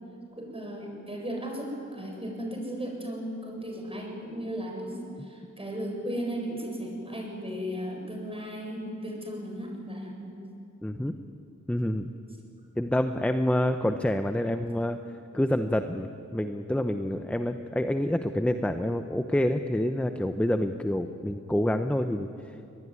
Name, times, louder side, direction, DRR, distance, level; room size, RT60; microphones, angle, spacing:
voice 1, 0.4-10.5, equal, 20° right, 1 dB, 7.3 m, -36 dB
voice 2, 10.8-11.1 11.7-12.1 12.7-15.0 15.3-22.6, left 1 dB, 5° left, 8 dB, 0.9 m, -27 dB
22.5 x 21.0 x 9.8 m, 2.6 s
wide cardioid pair, 80°, 30 cm